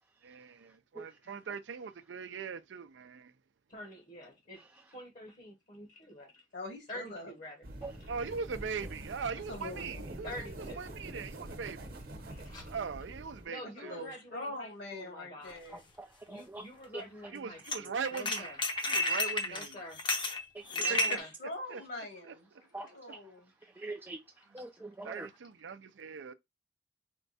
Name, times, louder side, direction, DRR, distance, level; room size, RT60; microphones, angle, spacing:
voice 1, 0.2-3.3 8.1-11.9 12.7-14.0 17.3-18.5 18.8-19.8 20.9-21.2 21.7-21.8 22.2-22.3 25.0-26.3, right 5 dB, 90° right, 0.5 m, -40 dB
voice 2, 3.7-4.7 4.9-6.4 6.9-8.1 10.2-10.8 12.3-12.7 13.5-15.6 16.3-20.1 20.7-21.3, left 1 dB, 45° left, 1.0 m, -47 dB
voice 3, 6.5-7.3 9.3-10.0 13.8-15.8 20.7-22.5 22.9-23.5, left 1 dB, 65° left, 1.9 m, -43 dB
sound 1, 7.6-13.5, right 1 dB, 55° right, 1.0 m, -45 dB
sound 2, 15.5-15.6 17.7-17.8 18.1-21.2, left 2 dB, 25° left, 0.7 m, -31 dB
voice 4, 15.7-16.7 16.9-17.0 20.5-20.9 22.7-23.2 23.6-24.2 24.5-25.3, right 2 dB, 10° right, 0.3 m, -44 dB
4.5 x 2.2 x 4.0 m
head